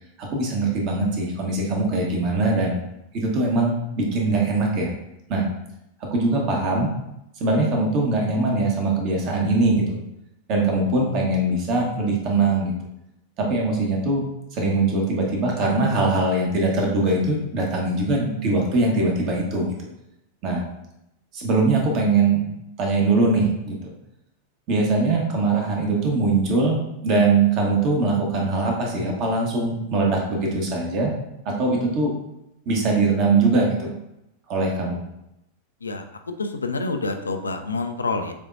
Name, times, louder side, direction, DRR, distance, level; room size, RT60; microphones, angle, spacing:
voice 1, 0.3-2.8 3.1-4.9 5.3-5.4 6.1-6.9 7.4-10.0 10.5-12.7 13.4-14.2 14.5-19.7 20.4-20.6 21.3-22.4 22.8-23.9 24.7-31.1 31.4-32.1 32.7-33.9 34.5-35.0, right 3 dB, 40° right, -1 dB, 1.2 m, -22 dB
voice 2, 35.8-38.3, left 3 dB, 75° left, 6 dB, 0.4 m, -28 dB
6.8 x 2.9 x 2.6 m, 0.84 s
figure-of-eight pair, 90°, 0 cm